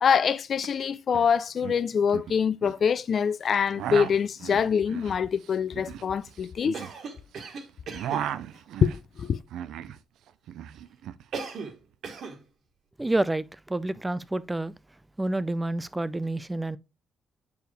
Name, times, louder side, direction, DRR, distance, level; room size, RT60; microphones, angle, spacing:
voice 1, 0.0-6.8 8.8-9.4, left 7 dB, 50° left, 0.5 m, -25 dB
sound 1, 0.6-0.7 0.9-1.3 1.6-2.8 3.5-7.5 7.7-10.0 10.3-11.2, right 10 dB, 80° right, 0.5 m, -36 dB
Cough, 6.7-8.3 11.3-11.8 12.0-12.4, right 5 dB, 65° right, 1.6 m, -37 dB
voice 2, 13.0-14.7 15.2-16.8, right 2 dB, 15° right, 0.5 m, -28 dB
8.0 x 4.7 x 3.3 m
cardioid pair, 90°, 0 cm